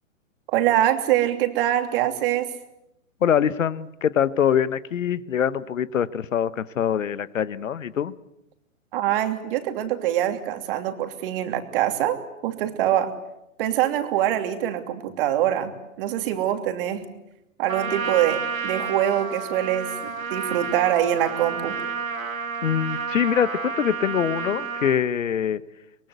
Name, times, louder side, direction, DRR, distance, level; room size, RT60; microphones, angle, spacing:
voice 1, 0.5-2.5 8.9-12.2 12.4-13.1 13.6-15.7 16.0-17.0 17.6-21.7, right 12 dB, 40° right, 7 dB, 2.9 m, -24 dB
voice 2, 3.2-8.1 22.6-25.6, left 8 dB, 70° left, 17 dB, 1.2 m, -24 dB
Trumpet, 17.7-25.0, right 6 dB, 80° right, 2.6 m, -30 dB
24.5 x 22.0 x 8.2 m, 0.88 s
hypercardioid pair, 125°, 40 cm